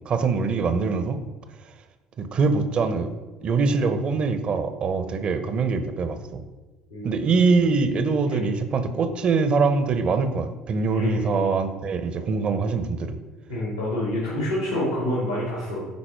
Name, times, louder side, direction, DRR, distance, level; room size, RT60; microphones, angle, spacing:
voice 1, 0.1-1.2 2.2-3.1 3.4-6.4 7.0-13.2, right 4 dB, 40° right, 9 dB, 0.9 m, -23 dB
voice 2, 8.2-8.5 10.9-11.5 13.5-15.9, left 1 dB, 90° left, -6 dB, 2.1 m, -27 dB
9.7 x 4.3 x 4.6 m, 1.2 s
figure-of-eight pair, 60°, 3 cm